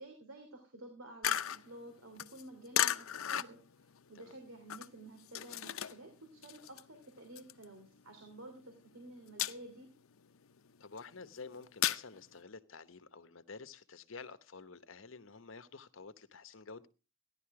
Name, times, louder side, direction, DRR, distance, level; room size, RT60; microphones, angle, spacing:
voice 1, 0.0-9.9, right 1 dB, 80° right, 2.8 m, -52 dB
sound 1, 1.2-6.1 6.4-8.3 8.7-8.9 9.3-9.9 10.3-12.0, left 11 dB, 90° left, 0.7 m, -35 dB
voice 2, 10.8-16.9, left 4 dB, 70° left, 1.0 m, -50 dB
15.5 x 11.0 x 4.8 m
head